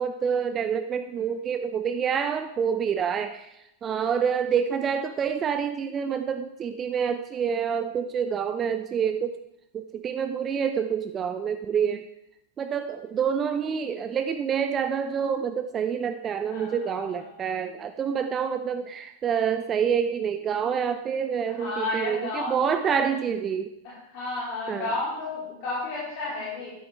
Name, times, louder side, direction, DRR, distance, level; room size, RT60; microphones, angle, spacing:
voice 1, 0.0-9.4 9.7-12.1 12.6-23.7 24.7-24.9, right 7 dB, 25° right, 9 dB, 0.5 m, -27 dB
voice 2, 16.5-17.3 21.5-23.0 23.8-26.7, left 2 dB, 45° left, -9 dB, 4.4 m, -32 dB
12.5 x 11.0 x 3.5 m, 0.80 s
figure-of-eight pair, 90°, 0 cm